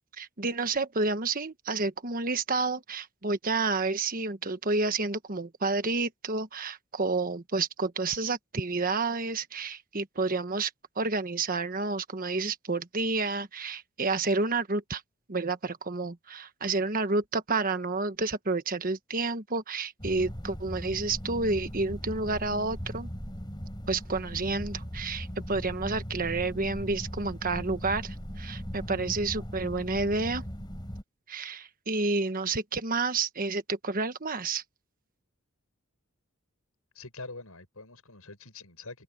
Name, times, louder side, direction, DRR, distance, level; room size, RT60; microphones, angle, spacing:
voice 1, 0.2-10.7 11.0-15.0 15.3-23.1 23.9-30.4 31.3-34.6, right 3 dB, 40° right, 1.3 m, -30 dB
sound 1, 20.0-31.0, equal, 20° left, 6.7 m, -39 dB
voice 2, 37.0-39.0, left 3 dB, 75° left, 6.8 m, -44 dB
head